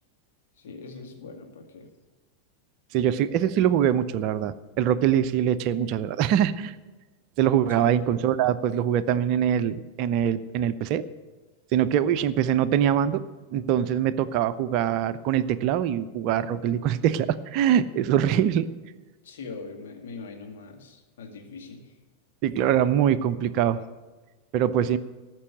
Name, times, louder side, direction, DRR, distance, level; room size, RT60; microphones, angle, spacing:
voice 1, 0.6-1.9 7.8-8.0 19.2-21.9, left 4 dB, 60° left, 2 dB, 2.2 m, -41 dB
voice 2, 2.9-6.7 7.4-11.0 11.7-13.2 13.5-18.7 22.4-23.8 24.5-25.0, right 10 dB, 40° right, 13 dB, 0.6 m, -23 dB
14.0 x 6.1 x 8.9 m, 1.3 s
figure-of-eight pair, 90°, 0 cm